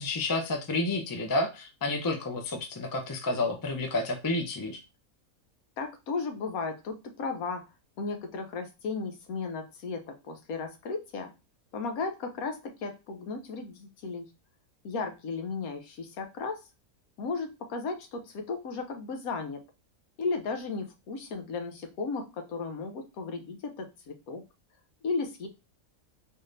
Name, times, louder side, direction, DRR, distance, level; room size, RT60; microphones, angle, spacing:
voice 1, 0.0-4.8, left 2 dB, 30° left, 4 dB, 0.4 m, -30 dB
voice 2, 5.8-7.6 8.0-11.3 11.7-14.3 14.8-16.6 17.2-19.6 20.2-24.4 25.0-25.5, left 4 dB, 85° left, 6 dB, 1.2 m, -35 dB
4.1 x 2.6 x 3.2 m, 0.27 s
omnidirectional pair, 1.5 m